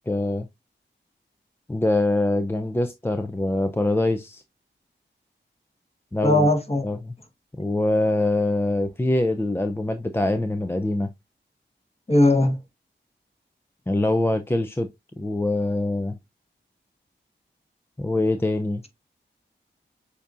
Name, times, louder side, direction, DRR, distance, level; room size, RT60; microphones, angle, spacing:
voice 1, 0.1-0.5 1.7-4.4 6.1-6.5 6.8-7.1 7.6-11.1 13.9-14.9 15.2-16.1 18.0-18.9, left 2 dB, 10° left, 0.4 m, -24 dB
voice 2, 6.2-6.8 12.1-12.6, left 1 dB, 30° left, 1.4 m, -18 dB
6.9 x 2.7 x 2.5 m
cardioid pair, 50°, 20 cm